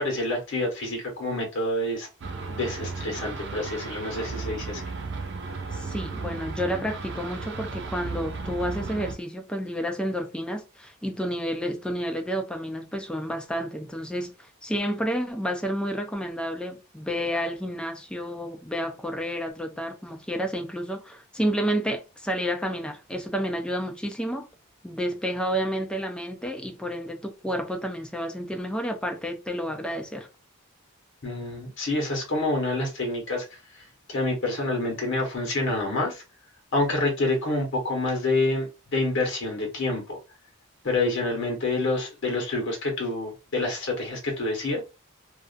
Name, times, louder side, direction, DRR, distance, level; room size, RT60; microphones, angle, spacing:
voice 1, 0.0-2.1 2.5-4.8 31.2-33.4 34.1-36.2 36.7-40.2 40.8-44.8, left 2 dB, 60° left, 1.0 m, -27 dB
sound 1, 2.2-9.2, right 4 dB, 55° right, 0.5 m, -35 dB
voice 2, 5.7-24.5 24.8-30.3, equal, 5° left, 0.4 m, -30 dB
2.4 x 2.3 x 2.4 m
head